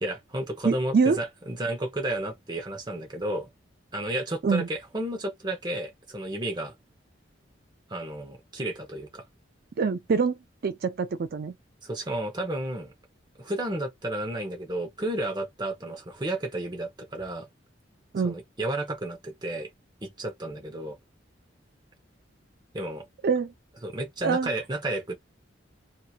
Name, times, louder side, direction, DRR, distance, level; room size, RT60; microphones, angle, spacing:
voice 1, 0.0-3.5 3.9-6.8 7.9-9.2 11.8-12.9 13.4-17.5 18.2-19.7 20.0-21.0 22.7-23.0 23.8-25.1, right 1 dB, 25° right, 0.9 m, -32 dB
voice 2, 0.6-1.2 4.4-4.7 9.8-11.5 18.1-18.4 23.2-23.5 24.2-24.5, right 5 dB, 55° right, 0.4 m, -25 dB
2.9 x 2.7 x 2.4 m
head